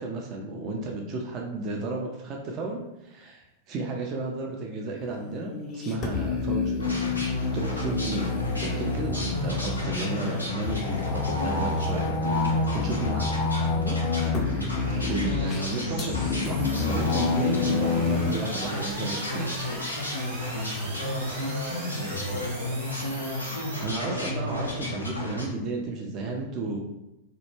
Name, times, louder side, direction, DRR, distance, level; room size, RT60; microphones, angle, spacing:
voice 1, 0.0-6.8 7.5-13.3 13.7-14.0 15.0-19.5 23.8-26.8, right 2 dB, 35° right, 0 dB, 0.4 m, -33 dB
sound 1, 5.0-18.3, left 4 dB, 30° left, 0.4 m, -28 dB
sound 2, 6.8-25.5, left 1 dB, 90° left, 0.5 m, -32 dB
sound 3, 12.2-23.8, right 2 dB, 55° right, 0.8 m, -42 dB
voice 2, 20.9-22.8 24.0-24.3, equal, 90° right, -5 dB, 0.7 m, -38 dB
2.1 x 2.1 x 3.1 m, 0.93 s
figure-of-eight pair, 95°, 0 cm